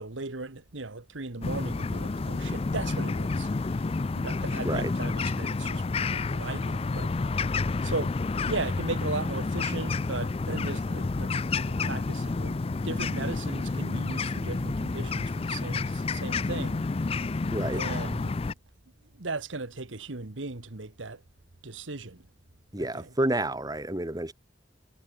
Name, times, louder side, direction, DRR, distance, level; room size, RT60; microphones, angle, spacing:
voice 1, 0.0-7.1 7.8-8.2 8.4-11.3 11.7-16.8 17.7-18.3 19.1-21.2 21.6-22.3 22.8-23.1, right 3 dB, 80° right, 1.5 m, -37 dB
sound 1, 1.4-18.5, left 3 dB, 30° left, 0.4 m, -30 dB
voice 2, 17.5-17.8 22.7-24.3, right 1 dB, 20° right, 2.2 m, -29 dB
head